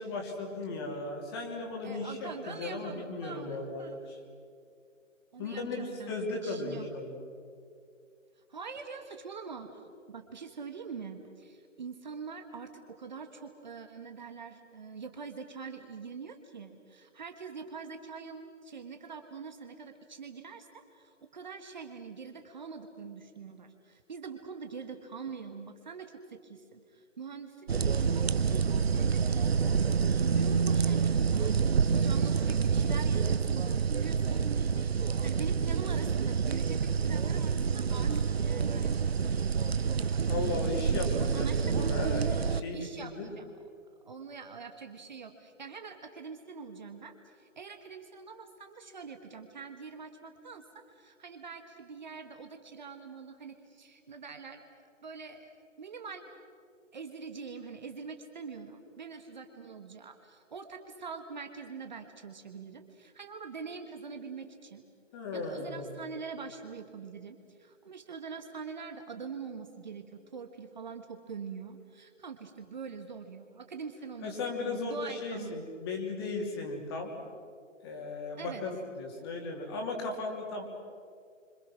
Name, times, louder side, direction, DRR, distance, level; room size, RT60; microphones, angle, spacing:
voice 1, 0.0-4.2 5.4-7.2 40.2-43.3 65.1-66.0 74.2-77.1 77.8-80.6, left 3 dB, 20° left, 1 dB, 2.9 m, -36 dB
voice 2, 1.8-4.0 5.3-6.1 6.4-6.9 8.5-9.8 10.1-29.7 30.1-31.5 31.9-34.4 35.2-39.7 41.1-42.0 42.7-43.5 44.0-54.6 55.0-55.5 55.8-56.3 56.9-64.9 65.3-75.6 78.4-78.6, right 5 dB, 35° right, 6 dB, 1.6 m, -44 dB
sound 1, 27.7-42.6, right 6 dB, 50° right, 0.8 m, -28 dB
27.5 x 26.0 x 6.2 m, 2.3 s
figure-of-eight pair, 155°, 38 cm